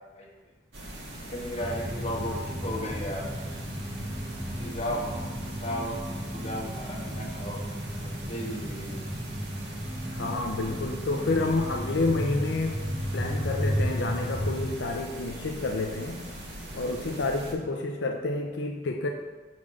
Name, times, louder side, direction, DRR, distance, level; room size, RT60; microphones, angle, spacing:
sound 1, 0.7-17.5, right 1 dB, 70° right, 1.5 m, -41 dB
voice 1, 1.2-3.2 4.3-6.0 6.3-7.7 8.0-9.0, equal, 35° left, -3 dB, 1.3 m, -35 dB
sound 2, 1.6-14.7, equal, 10° right, 0.8 m, -34 dB
voice 2, 10.0-12.8 13.1-16.2 16.7-19.1, left 2 dB, 80° left, 2 dB, 0.6 m, -29 dB
5.8 x 4.4 x 6.1 m, 1.3 s
head